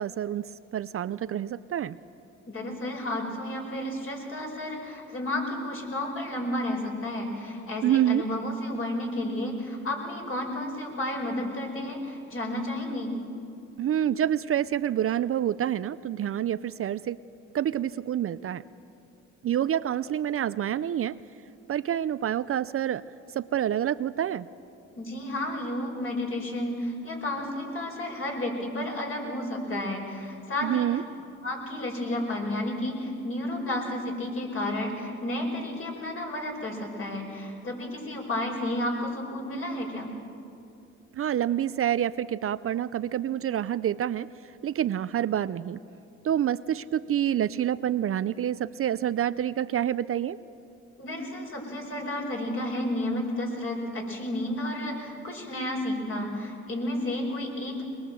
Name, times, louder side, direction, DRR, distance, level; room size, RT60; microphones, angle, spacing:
voice 1, 0.0-2.0 7.8-8.2 13.8-17.2 17.5-18.6 19.4-21.2 21.7-23.0 23.3-24.5 30.6-31.0 41.1-45.8 46.2-50.4, right 10 dB, 50° right, 14 dB, 0.5 m, -27 dB
voice 2, 2.5-13.1 25.0-30.9 31.4-40.1 51.0-57.8, left 1 dB, 45° left, 0 dB, 5.3 m, -32 dB
22.0 x 21.0 x 7.7 m, 2.6 s
cardioid pair, 90°, 30 cm